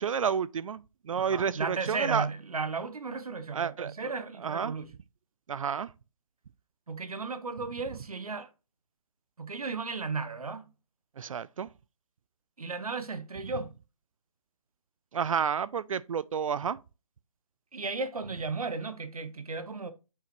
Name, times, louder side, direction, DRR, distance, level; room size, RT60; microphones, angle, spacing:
voice 1, 0.0-2.3 3.5-3.9 4.4-4.7 5.5-5.9 11.2-11.7 15.1-16.8, right 7 dB, 65° right, 0.4 m, -30 dB
voice 2, 1.1-4.9 6.9-8.5 9.4-10.6 12.6-13.7 17.7-19.9, right 4 dB, 90° right, 1.1 m, -35 dB
8.5 x 4.8 x 3.0 m
hypercardioid pair, 160°, 18 cm